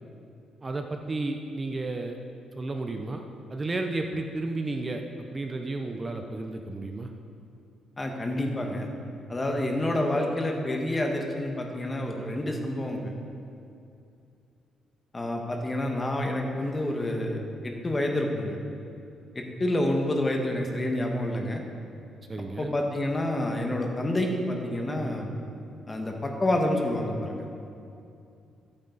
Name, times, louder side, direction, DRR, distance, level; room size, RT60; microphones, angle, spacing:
voice 1, 0.6-2.2 2.6-3.2 3.5-7.1 22.3-22.7, right 2 dB, 30° right, 4 dB, 0.8 m, -32 dB
voice 2, 8.0-8.9 9.3-13.1 15.1-18.6 19.3-21.6 22.6-25.3 25.9-27.5, left 1 dB, 25° left, 2 dB, 1.6 m, -28 dB
14.0 x 8.8 x 4.1 m, 2.6 s
cardioid pair, 90°, 0 cm